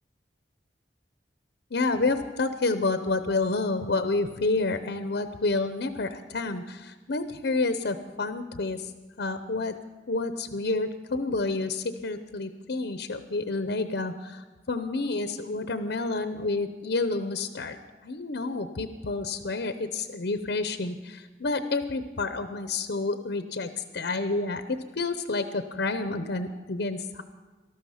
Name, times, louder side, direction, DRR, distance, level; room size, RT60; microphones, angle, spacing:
voice 1, 1.7-8.9 9.2-9.8 10.1-17.8 18.0-27.2, left 3 dB, 75° left, 10 dB, 0.7 m, -29 dB
19.0 x 12.5 x 5.7 m, 1.3 s
head